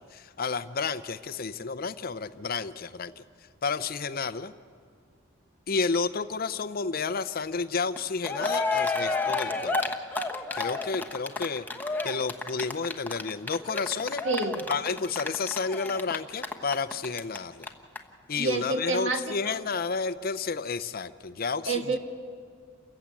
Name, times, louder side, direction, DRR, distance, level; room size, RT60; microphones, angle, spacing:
voice 1, 0.0-3.2 3.6-4.5 5.7-9.8 10.5-11.7 12.0-14.2 14.7-17.7 18.3-22.0, left 4 dB, 45° left, 13 dB, 0.6 m, -31 dB
Cheering, 8.0-17.4 17.6-17.7 17.9-18.0, left 3 dB, 10° left, 1.0 m, -30 dB
voice 2, 14.2-14.6 18.4-19.6 21.7-22.0, right 3 dB, 60° right, 5 dB, 1.6 m, -28 dB
29.0 x 15.0 x 8.4 m, 2.1 s
head